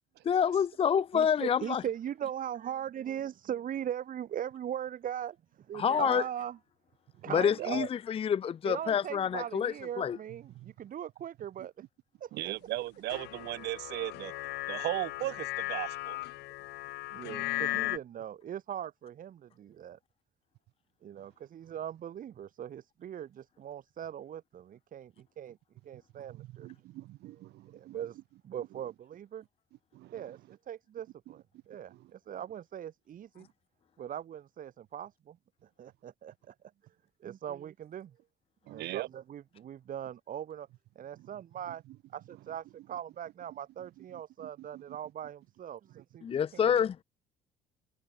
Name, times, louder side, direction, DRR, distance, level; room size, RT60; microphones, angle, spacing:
voice 1, 0.2-1.8 5.7-6.2 7.3-10.2 46.2-47.0, left 8 dB, 35° left, 0.6 m, -28 dB
voice 2, 1.1-6.6 7.2-7.9 8.6-11.7 12.2-12.5 17.1-20.0 21.0-25.6 25.8-26.7 27.2-29.5 30.1-33.5 34.0-36.5 37.2-38.2 38.6-40.7 40.9-41.8 42.1-46.3 46.5-46.8, right 10 dB, 55° right, 4.4 m, -40 dB
voice 3, 7.6-7.9 12.3-14.3 14.7-16.2 26.4-28.0 29.9-30.1 38.7-39.1 44.7-44.8, right 16 dB, 80° right, 5.7 m, -37 dB
sound 1, 13.1-18.0, left 19 dB, 85° left, 5.4 m, -36 dB
cardioid pair, 110°, 17 cm